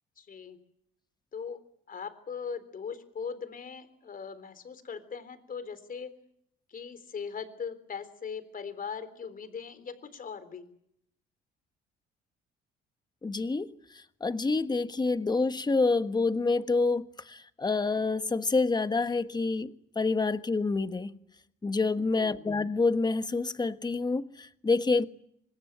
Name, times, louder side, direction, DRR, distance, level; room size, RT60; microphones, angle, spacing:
voice 1, 0.2-0.6 1.3-1.6 1.9-6.1 6.7-10.7 22.1-22.5, left 6 dB, 45° left, 3.7 m, -40 dB
voice 2, 13.2-13.7 14.2-21.1 21.6-25.1, left 3 dB, 20° left, 1.4 m, -27 dB
25.5 x 20.0 x 9.2 m
supercardioid pair, 80°, 21 cm